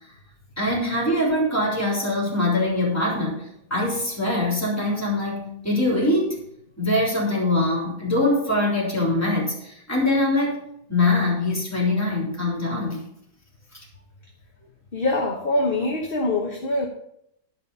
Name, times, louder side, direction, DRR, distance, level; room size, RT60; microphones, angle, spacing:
voice 1, 0.6-6.4 6.8-10.6 10.9-13.0, left 2 dB, 10° left, -3 dB, 3.4 m, -23 dB
voice 2, 14.9-16.9, left 2 dB, 35° left, -1 dB, 1.2 m, -24 dB
11.5 x 5.6 x 5.4 m, 0.74 s
omnidirectional pair, 1.8 m